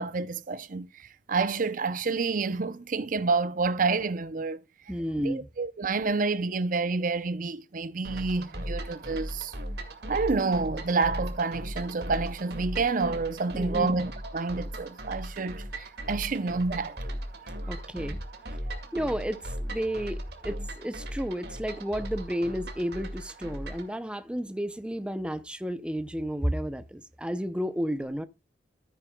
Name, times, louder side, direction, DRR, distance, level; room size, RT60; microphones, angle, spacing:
voice 1, 0.0-4.6 5.2-9.5 10.1-17.0 17.6-17.8 18.6-18.8, right 4 dB, 50° right, 0.6 m, -29 dB
voice 2, 4.9-5.5 13.5-13.9 17.7-18.2 18.9-28.2, equal, 5° right, 0.6 m, -32 dB
sound 1, 8.0-23.9, right 1 dB, 65° right, 2.2 m, -38 dB
13.5 x 9.4 x 2.3 m
head